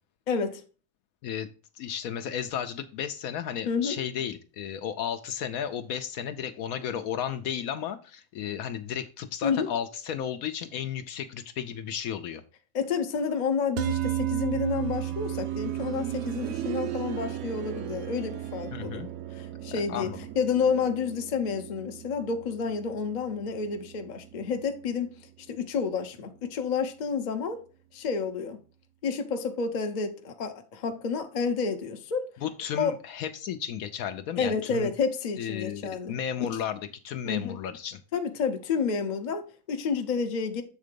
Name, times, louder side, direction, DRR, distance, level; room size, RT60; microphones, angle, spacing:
voice 1, 0.3-0.6 3.6-4.0 9.4-9.7 12.7-19.0 19.3-25.1 25.5-27.6 27.9-28.6 29.0-32.3 32.8-32.9 34.4-36.1 36.4-36.6 37.2-37.5 38.1-40.6, left 5 dB, 40° left, 0.7 m, -30 dB
voice 2, 1.7-12.4 18.7-19.1 19.7-20.2 32.4-34.9 35.4-38.0, left 9 dB, 70° left, 1.0 m, -34 dB
sound 1, 13.8-24.2, right 13 dB, 85° right, 1.1 m, -35 dB
sound 2, 14.5-25.3 26.7-26.8, right 11 dB, 60° right, 0.9 m, -41 dB
7.4 x 3.8 x 5.1 m
omnidirectional pair, 1.7 m